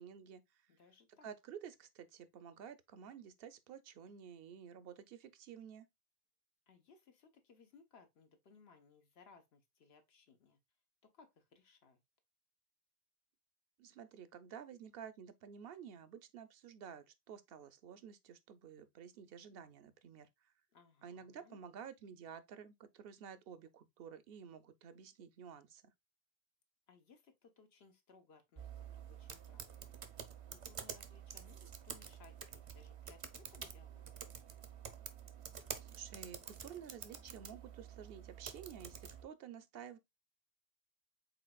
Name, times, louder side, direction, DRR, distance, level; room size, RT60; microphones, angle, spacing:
voice 1, 0.0-0.7 1.2-5.9 13.8-20.3 21.0-25.8 35.8-40.0, right 8 dB, 75° right, 0.8 m, -52 dB
voice 2, 0.7-1.3 6.7-10.6 11.0-12.0 20.7-21.6 26.9-30.0 30.5-34.2, left 5 dB, 90° left, 1.2 m, -64 dB
sound 1, 28.6-39.2, right 7 dB, 45° right, 0.5 m, -49 dB
5.0 x 3.9 x 2.2 m
omnidirectional pair, 1.0 m